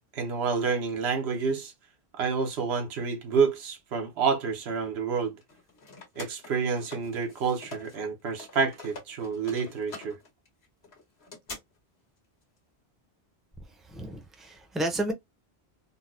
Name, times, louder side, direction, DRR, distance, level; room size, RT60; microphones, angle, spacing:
voice 1, 0.1-1.7 2.2-5.4 6.2-10.2, right 5 dB, 90° right, 1.0 m, -28 dB
sound 1, 5.4-8.0 8.3-11.6, left 3 dB, 85° left, 1.3 m, -45 dB
voice 2, 13.7-15.1, right 1 dB, ahead, 0.4 m, -32 dB
3.9 x 2.0 x 2.4 m
omnidirectional pair, 1.0 m